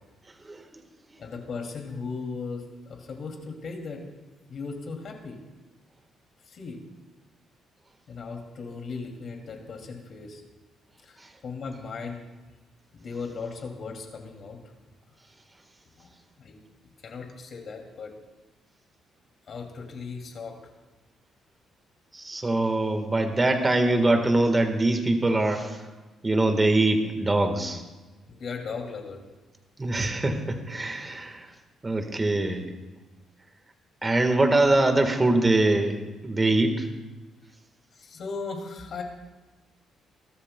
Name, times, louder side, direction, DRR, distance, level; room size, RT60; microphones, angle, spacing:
voice 1, 1.2-4.0 4.5-5.4 6.5-6.8 8.1-10.4 11.0-12.2 12.9-14.6 16.0-16.1 16.4-16.6 17.0-18.1 19.5-20.6 28.3-29.2 37.9-39.0, left 4 dB, 50° left, 2 dB, 2.4 m, -37 dB
voice 2, 22.1-25.8 26.2-27.8 29.8-31.5 31.8-32.7 34.0-36.9, right 2 dB, 20° right, 5 dB, 1.4 m, -23 dB
22.0 x 13.0 x 2.2 m, 1.2 s
cardioid pair, 120°, 0 cm